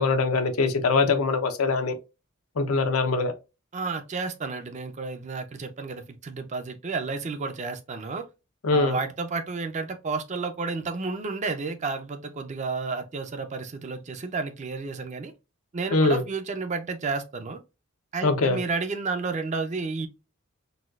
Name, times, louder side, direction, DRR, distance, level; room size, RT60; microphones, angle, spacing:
voice 1, 0.0-2.0 2.6-3.3 8.6-9.0 15.9-16.2 18.2-18.6, left 3 dB, 85° left, 0.7 m, -22 dB
voice 2, 3.7-8.3 8.7-15.3 15.7-17.6 18.1-20.1, right 4 dB, 35° right, 0.4 m, -31 dB
4.0 x 2.3 x 2.3 m
head